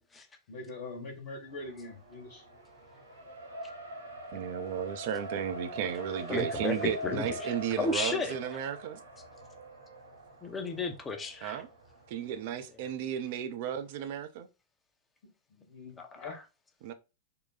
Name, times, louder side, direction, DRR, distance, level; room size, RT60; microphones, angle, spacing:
voice 1, 0.5-2.4 15.5-16.4, left 2 dB, 55° left, 1.2 m, -43 dB
Race car auto racing, 1.5-12.5, equal, 75° right, 0.8 m, -43 dB
voice 2, 4.3-9.0 11.4-11.7 12.1-14.5 16.8-16.9, right 9 dB, 50° right, 0.5 m, -34 dB
voice 3, 6.3-7.5 7.8-8.4 10.4-11.6 16.0-16.4, left 3 dB, 15° left, 0.8 m, -33 dB
3.7 x 2.2 x 4.0 m
figure-of-eight pair, 90°, 0 cm